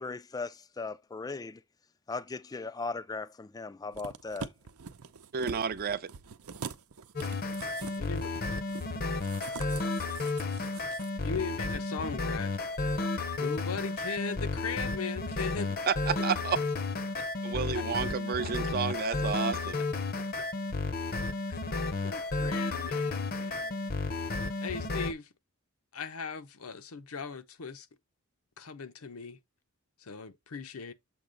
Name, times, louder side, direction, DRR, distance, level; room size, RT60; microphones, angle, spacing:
voice 1, 0.0-1.6 2.1-4.5, left 3 dB, 15° left, 0.3 m, -38 dB
sound 1, 3.9-11.1 11.4-11.5, right 5 dB, 90° right, 0.7 m, -44 dB
voice 2, 5.3-6.1 15.9-16.6 17.4-19.8, right 6 dB, 45° right, 0.5 m, -31 dB
sound 2, 7.2-25.1, left 3 dB, 45° left, 0.7 m, -32 dB
voice 3, 8.0-8.3 11.2-12.5 13.4-15.8 17.2-17.3 17.7-17.8 20.4-20.5 21.5-21.8 22.0-24.2 24.6-25.3 25.9-27.9 28.6-29.4 30.0-30.9, left 5 dB, 80° left, 0.8 m, -39 dB
7.1 x 2.9 x 5.1 m
head